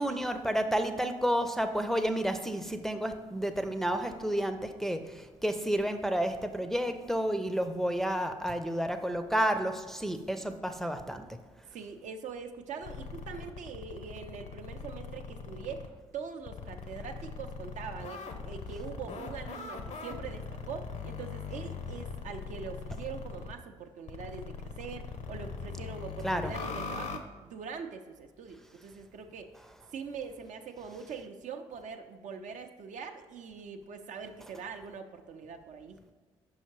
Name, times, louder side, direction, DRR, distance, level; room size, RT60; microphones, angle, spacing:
voice 1, 0.0-11.2 26.2-26.5, equal, ahead, 6 dB, 0.5 m, -31 dB
voice 2, 11.7-29.5 29.9-36.0, right 5 dB, 55° right, 6 dB, 0.5 m, -43 dB
sound 1, 12.8-15.9 16.5-23.5 24.1-27.2, left 5 dB, 50° left, 0.6 m, -41 dB
5.6 x 5.5 x 3.1 m, 1.4 s
hypercardioid pair, 45°, 15 cm